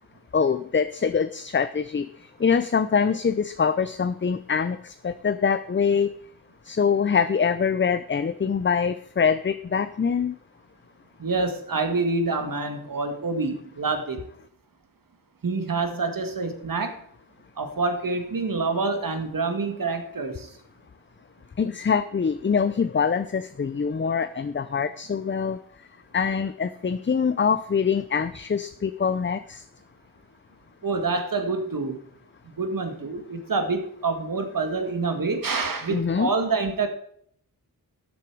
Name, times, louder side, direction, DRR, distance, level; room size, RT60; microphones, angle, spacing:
voice 1, 0.3-2.1 2.4-6.1 6.7-10.3 21.6-25.6 26.1-29.6 35.9-36.3, left 6 dB, 35° left, 11 dB, 0.5 m, -24 dB
voice 2, 11.2-14.2 15.4-17.0 17.6-20.5 30.8-32.0 32.6-36.9, right 3 dB, 65° right, 6 dB, 1.9 m, -27 dB
12.5 x 8.2 x 4.6 m, 0.64 s
wide cardioid pair, 80°, 36 cm